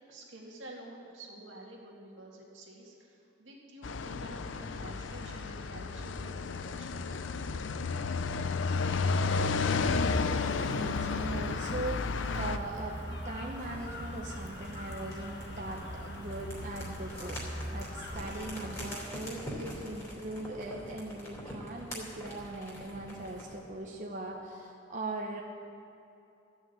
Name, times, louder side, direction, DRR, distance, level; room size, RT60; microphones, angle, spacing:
voice 1, 0.1-7.3, right 1 dB, 85° right, -2 dB, 2.2 m, -49 dB
sound 1, 3.8-12.6, left 4 dB, 80° left, 0.5 m, -32 dB
sound 2, 9.9-19.2, equal, 60° left, 1.4 m, -42 dB
voice 2, 10.7-25.4, right 2 dB, 40° right, -1 dB, 0.9 m, -40 dB
sound 3, 13.6-23.6, equal, 20° left, 3.0 m, -45 dB
13.5 x 6.4 x 8.4 m, 2.8 s
head